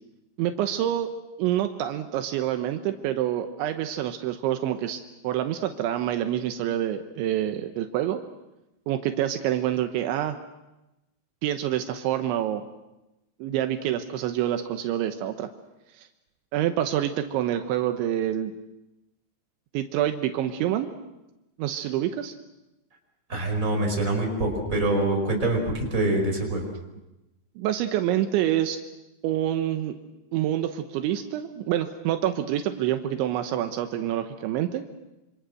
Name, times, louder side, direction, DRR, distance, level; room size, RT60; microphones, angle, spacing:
voice 1, 0.4-1.1 1.4-8.2 8.9-10.4 11.4-12.6 13.4-15.5 16.0-16.1 16.5-18.5 19.7-20.9 21.6-22.3 27.6-28.8 29.2-30.0 30.3-34.8, right 12 dB, 80° right, 7 dB, 3.3 m, -27 dB
voice 2, 23.3-26.7, right 2 dB, 15° right, 2 dB, 5.1 m, -25 dB
27.0 x 27.0 x 6.4 m, 0.96 s
omnidirectional pair, 5.4 m